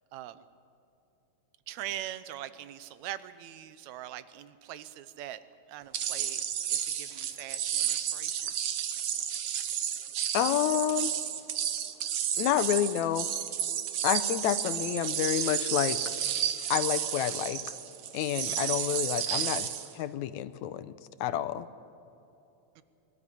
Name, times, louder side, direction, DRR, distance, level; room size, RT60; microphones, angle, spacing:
voice 1, 0.1-0.4 1.7-6.4 6.7-8.6 18.4-18.8 19.3-19.4 22.8-22.9, right 12 dB, 80° right, 14 dB, 2.1 m, -42 dB
sound 1, 5.9-19.9, right 9 dB, 60° right, 1.8 m, -32 dB
voice 2, 10.3-11.1 12.4-13.3 14.0-16.0 16.7-17.6 18.1-19.7 19.9-20.9 21.2-21.7, left 11 dB, 80° left, 13 dB, 2.1 m, -29 dB
23.0 x 12.5 x 10.0 m, 2.9 s
omnidirectional pair, 3.3 m